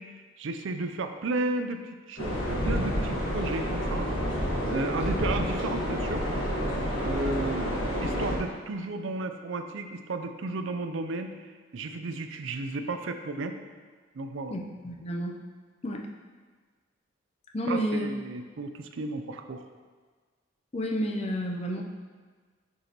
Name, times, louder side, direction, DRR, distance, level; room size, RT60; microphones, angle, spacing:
voice 1, 0.0-4.1 4.7-6.3 7.0-7.7 8.0-11.3 11.7-13.5 14.1-14.6 17.7-19.7, right 3 dB, 70° right, 7 dB, 0.5 m, -33 dB
sound 1, 2.2-8.4, equal, 85° left, 1.5 m, -29 dB
voice 2, 14.5-15.4 15.8-16.1 17.5-18.1 20.7-21.8, equal, 30° left, 2 dB, 0.5 m, -30 dB
6.5 x 6.2 x 2.9 m, 1.5 s
head